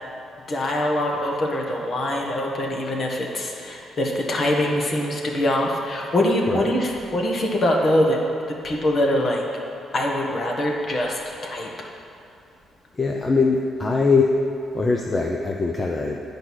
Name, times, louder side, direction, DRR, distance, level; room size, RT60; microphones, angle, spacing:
voice 1, 0.5-8.2 8.6-9.4 9.9-11.7, left 1 dB, 45° left, 0 dB, 1.5 m, -23 dB
voice 2, 12.9-14.4 14.7-16.2, left 4 dB, 30° left, 1 dB, 0.7 m, -22 dB
9.6 x 5.1 x 6.2 m, 2.7 s
cardioid pair, 90°, 0 cm